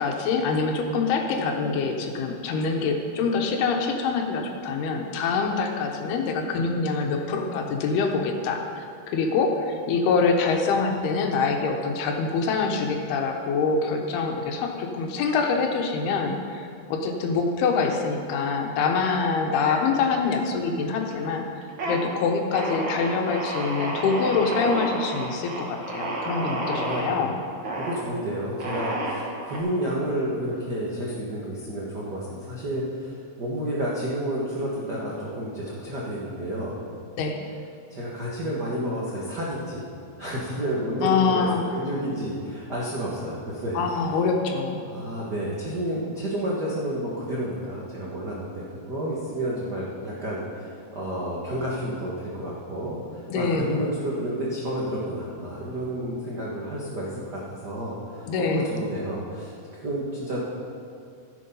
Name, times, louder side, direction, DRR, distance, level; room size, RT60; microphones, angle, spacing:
voice 1, 0.0-21.5 21.8-27.3 37.2-37.4 41.0-41.7 43.7-44.9 53.3-53.8 58.3-58.7, left 4 dB, 90° left, 3 dB, 3.1 m, -25 dB
sound 1, 19.7-20.4 20.7-21.3 21.6-22.0 22.5-27.1 27.6-28.0 28.6-29.6, right 1 dB, 50° right, 1.5 m, -30 dB
voice 2, 26.7-27.1 27.7-36.8 37.9-39.9 40.2-41.5 41.7-44.1 44.9-60.4, right 1 dB, 85° right, -6 dB, 0.9 m, -30 dB
15.0 x 7.4 x 5.5 m, 2.4 s
omnidirectional pair, 4.4 m